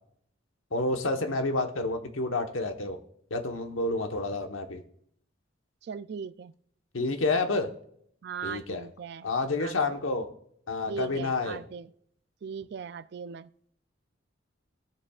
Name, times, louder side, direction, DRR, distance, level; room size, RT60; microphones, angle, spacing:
voice 1, 0.7-3.0 3.3-4.8 6.9-7.7 8.4-8.8 9.2-10.3 10.7-11.6, left 2 dB, 85° left, 1.1 m, -29 dB
voice 2, 5.8-6.5 8.2-9.3 9.6-9.8 10.9-11.9 12.4-13.5, right 6 dB, 55° right, 0.3 m, -38 dB
21.5 x 7.2 x 2.4 m
head